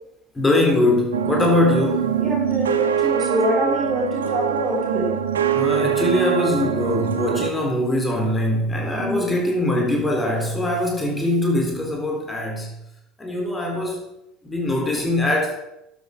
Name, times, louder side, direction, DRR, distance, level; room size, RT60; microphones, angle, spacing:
voice 1, 0.4-2.2 5.5-12.7 13.2-14.0 14.4-15.6, left 1 dB, 15° left, 0 dB, 3.6 m, -22 dB
sound 1, 1.1-7.5, right 8 dB, 80° right, 0.9 m, -23 dB
voice 2, 2.2-5.1 9.0-9.3, equal, 35° right, -1 dB, 3.6 m, -25 dB
12.0 x 8.1 x 5.0 m, 0.85 s
figure-of-eight pair, 70°, 0 cm